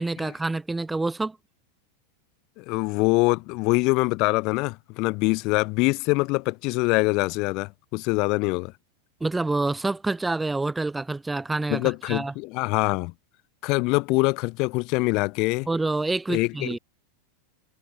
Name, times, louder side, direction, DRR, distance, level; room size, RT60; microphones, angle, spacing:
voice 1, 0.0-1.4 9.2-12.3 15.7-16.8, right 2 dB, 10° right, 2.4 m, -27 dB
voice 2, 2.6-8.7 11.7-13.1 13.6-15.7 16.3-16.8, left 26 dB, 40° left, 4.6 m, -24 dB
figure-of-eight pair, 90°, 0 cm